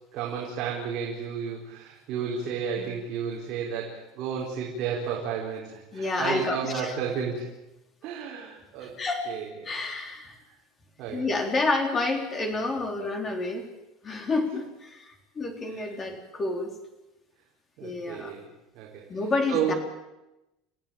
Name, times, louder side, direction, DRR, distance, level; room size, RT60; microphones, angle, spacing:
voice 1, 0.1-7.5 8.0-9.0 9.3-9.4 11.0-11.3 15.7-15.9 17.8-18.5 18.7-19.2 19.5-19.8, right 7 dB, 40° right, -3 dB, 4.9 m, -32 dB
voice 2, 5.9-6.9 8.8-9.3 9.6-10.4 11.1-13.7 14.0-16.7 17.8-18.4 19.1-19.7, left 3 dB, 20° left, 4 dB, 3.6 m, -29 dB
29.5 x 16.0 x 9.0 m, 0.98 s
cardioid pair, 175°, 0 cm